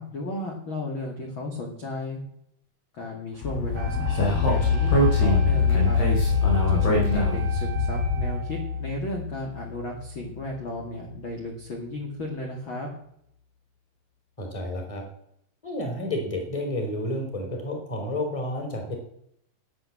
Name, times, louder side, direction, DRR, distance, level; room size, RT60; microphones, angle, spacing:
voice 1, 0.0-2.2 2.9-6.0 6.7-12.9, left 2 dB, 35° left, 0 dB, 2.5 m, -34 dB
Speech, 3.4-8.4, left 1 dB, 85° left, 7.1 m, -25 dB
sound 1, 3.5-11.2, left 6 dB, 70° left, 2.4 m, -26 dB
Wind instrument woodwind instrument, 3.7-8.8, right 8 dB, 80° right, 3.1 m, -41 dB
voice 2, 14.4-15.0 15.6-19.0, left 1 dB, 10° left, 2 dB, 3.5 m, -30 dB
14.0 x 9.9 x 7.5 m, 0.72 s
omnidirectional pair, 4.6 m